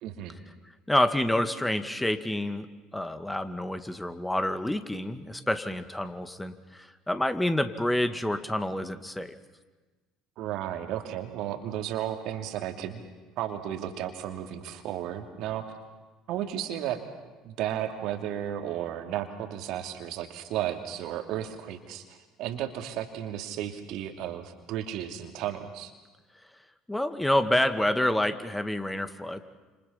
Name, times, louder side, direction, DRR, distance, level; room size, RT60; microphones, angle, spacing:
voice 1, 0.0-0.4 10.4-13.0 13.4-15.7 16.3-17.0 17.4-25.9, right 11 dB, 55° right, 5 dB, 2.7 m, -34 dB
voice 2, 0.9-9.3 26.9-29.4, left 1 dB, 5° left, 9 dB, 2.1 m, -28 dB
29.5 x 27.5 x 5.8 m, 1.2 s
figure-of-eight pair, 60°, 0 cm